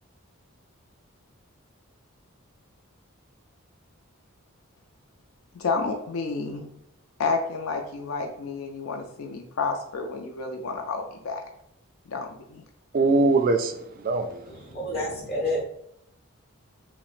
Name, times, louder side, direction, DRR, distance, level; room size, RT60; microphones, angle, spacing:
voice 1, 5.5-6.7 7.2-11.4 12.1-12.6, left 4 dB, 70° left, 3 dB, 0.4 m, -30 dB
voice 2, 12.9-14.6, right 3 dB, 40° right, 7 dB, 0.3 m, -23 dB
voice 3, 14.7-15.6, left 1 dB, 45° left, -3 dB, 1.3 m, -28 dB
5.7 x 2.1 x 2.4 m, 0.76 s
head